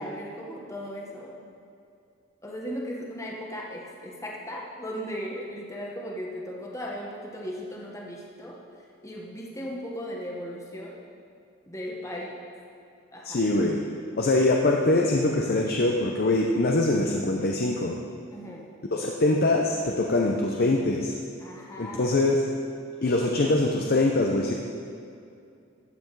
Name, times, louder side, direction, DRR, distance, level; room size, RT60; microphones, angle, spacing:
voice 1, 0.0-1.3 2.4-8.6 9.0-11.0 11.6-12.4 13.1-13.4 18.3-18.7 21.4-22.3, equal, 15° left, -2 dB, 1.1 m, -37 dB
voice 2, 13.2-13.8 14.2-18.0 18.9-21.2 21.8-22.4 23.0-24.5, left 2 dB, 50° left, 0 dB, 0.7 m, -23 dB
14.0 x 7.8 x 4.7 m, 2.5 s
head